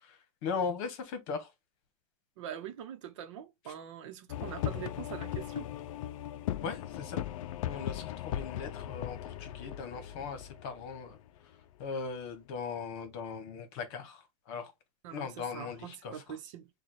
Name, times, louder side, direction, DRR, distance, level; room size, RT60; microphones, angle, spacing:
voice 1, 0.4-1.5 6.6-7.2 7.6-11.2 11.8-14.2 14.5-14.7 15.1-15.8 16.0-16.1, left 5 dB, 45° left, 1.2 m, -38 dB
voice 2, 2.4-5.7 15.0-16.7, right 9 dB, 55° right, 0.9 m, -43 dB
sound 1, 4.3-11.8, left 12 dB, 65° left, 0.5 m, -38 dB
6.7 x 2.4 x 3.1 m
supercardioid pair, 160°, 18 cm